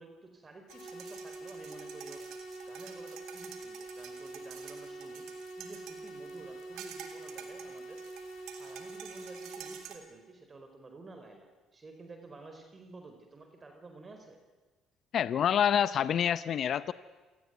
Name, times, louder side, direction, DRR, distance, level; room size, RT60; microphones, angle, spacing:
voice 1, 0.0-2.2 2.7-5.2 5.6-8.0 8.6-14.4, right 3 dB, 30° right, 5 dB, 4.6 m, -51 dB
sound 1, 0.7-9.7, right 2 dB, 80° left, 6.4 m, -45 dB
sound 2, 0.7-10.0, right 9 dB, 75° right, 3.3 m, -50 dB
voice 2, 15.1-16.9, left 9 dB, 60° left, 15 dB, 0.8 m, -27 dB
27.5 x 18.0 x 9.5 m, 1.3 s
supercardioid pair, 70°, 0 cm